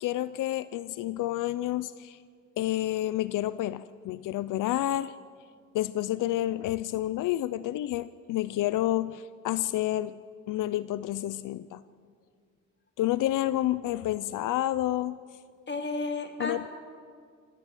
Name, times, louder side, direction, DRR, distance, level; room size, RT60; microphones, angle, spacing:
voice 1, 0.0-2.2 2.6-5.1 5.7-10.2 10.5-11.8 13.0-15.2 16.4-16.7, left 14 dB, 90° left, 16 dB, 0.6 m, -29 dB
voice 2, 15.7-16.7, left 3 dB, 35° left, 5 dB, 3.0 m, -32 dB
26.0 x 15.0 x 9.0 m, 2.1 s
cardioid pair, 95°, 30 cm